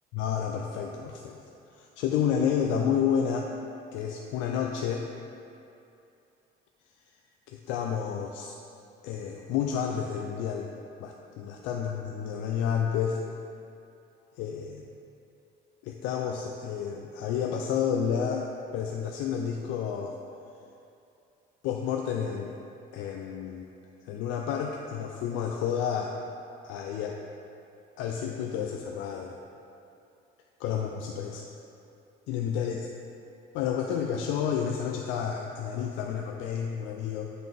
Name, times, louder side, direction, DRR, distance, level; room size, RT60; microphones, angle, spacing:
voice 1, 0.1-1.4 1.7-3.5 3.9-5.1 7.5-8.6 9.0-10.7 11.0-13.2 14.4-14.8 15.8-18.5 18.7-20.2 21.6-22.6 22.9-23.7 24.0-26.2 26.6-27.2 28.0-29.4 30.6-31.5 32.3-32.9 33.5-37.3, left 8 dB, 85° left, 1 dB, 0.4 m, -30 dB
9.3 x 3.9 x 3.5 m, 2.7 s
cardioid pair, 150°, 19 cm